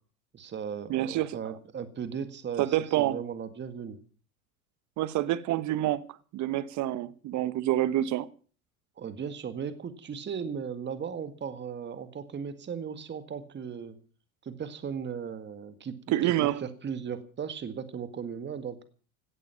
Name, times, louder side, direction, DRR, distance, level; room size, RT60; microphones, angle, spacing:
voice 1, 0.3-4.0 9.0-14.0 14.4-18.8, right 7 dB, 25° right, 2.0 m, -37 dB
voice 2, 0.9-1.4 2.6-3.2 5.0-6.1 6.3-8.3 16.1-16.6, right 13 dB, 40° right, 1.2 m, -27 dB
17.5 x 12.0 x 5.8 m
hypercardioid pair, 85°, 43 cm